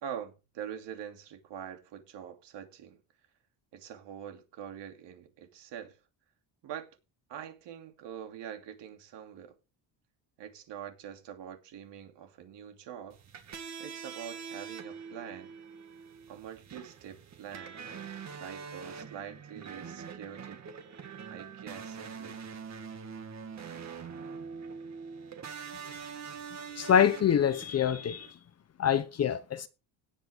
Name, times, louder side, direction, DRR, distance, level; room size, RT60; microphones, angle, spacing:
voice 1, 0.0-3.0 3.7-6.0 6.6-6.9 7.3-9.6 10.4-13.2 13.8-15.5 16.3-17.8 18.3-20.6 21.3-22.4, right 9 dB, 65° right, 2.9 m, -44 dB
sound 1, 13.1-28.3, right 6 dB, 35° right, 2.0 m, -44 dB
voice 2, 26.8-28.3 28.8-29.7, left 8 dB, 35° left, 0.8 m, -25 dB
17.5 x 8.5 x 3.6 m
cardioid pair, 180°, 45 cm